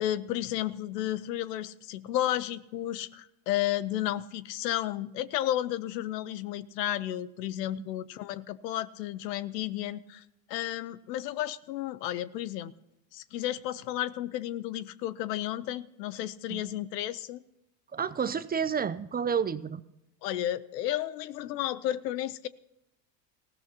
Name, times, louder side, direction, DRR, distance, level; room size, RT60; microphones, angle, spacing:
voice 1, 0.0-10.2 10.5-12.7 13.1-17.4 20.2-22.5, left 13 dB, 80° left, 17 dB, 0.8 m, -32 dB
voice 2, 17.9-19.8, right 7 dB, 20° right, 14 dB, 0.5 m, -30 dB
19.5 x 15.5 x 2.9 m, 0.88 s
hypercardioid pair, 90°, 48 cm